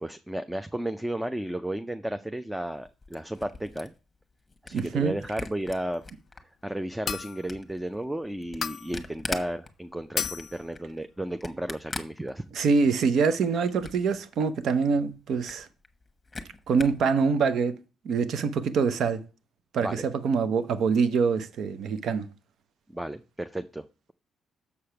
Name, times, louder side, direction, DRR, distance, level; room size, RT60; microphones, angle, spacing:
voice 1, 0.0-3.9 4.6-6.0 6.6-12.4 19.8-20.0 22.9-23.8, right 1 dB, 5° right, 0.5 m, -33 dB
Camera, 2.7-6.4 6.8-12.9 13.2-14.2 14.5-14.6 14.8-14.9 15.3-17.1, left 3 dB, 20° left, 1.1 m, -41 dB
voice 2, 4.7-5.1 12.5-15.7 16.7-17.7 18.0-19.2 19.7-22.3, right 5 dB, 70° right, 0.8 m, -25 dB
sound 1, 7.1-7.5 8.6-9.0 10.2-10.6, left 7 dB, 55° left, 0.3 m, -33 dB
6.9 x 4.9 x 5.7 m
cardioid pair, 90°, 0 cm